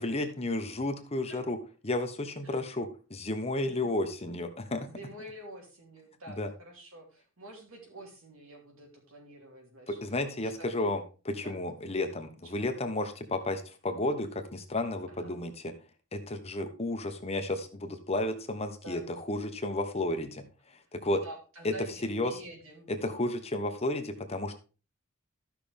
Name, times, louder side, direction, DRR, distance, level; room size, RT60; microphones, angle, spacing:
voice 1, 0.0-1.6 1.8-4.9 6.4-6.5 9.9-15.7 16.1-20.4 20.9-21.2 21.6-21.7 22.0-22.4 22.9-24.6, left 2 dB, 30° left, 6 dB, 1.1 m, -32 dB
voice 2, 4.9-10.7 11.4-11.6 12.4-12.7 15.1-15.3 18.8-19.0 21.2-22.9, right 1 dB, 85° right, 1 dB, 3.2 m, -48 dB
13.5 x 5.9 x 3.5 m, 0.33 s
head